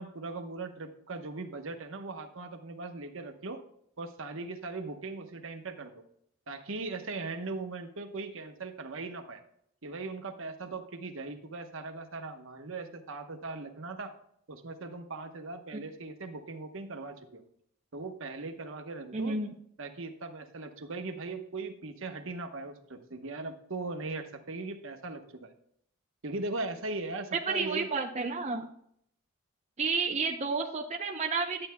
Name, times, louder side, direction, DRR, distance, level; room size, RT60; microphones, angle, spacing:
voice 1, 0.0-3.6 4.0-6.0 6.5-9.4 9.8-14.1 14.5-17.4 17.9-19.4 19.8-25.5 26.2-27.9, right 3 dB, 60° right, 5 dB, 1.0 m, -39 dB
voice 2, 19.1-19.6 27.5-28.7 29.8-31.7, right 4 dB, 30° right, 1 dB, 0.6 m, -31 dB
11.5 x 8.7 x 2.2 m, 0.68 s
head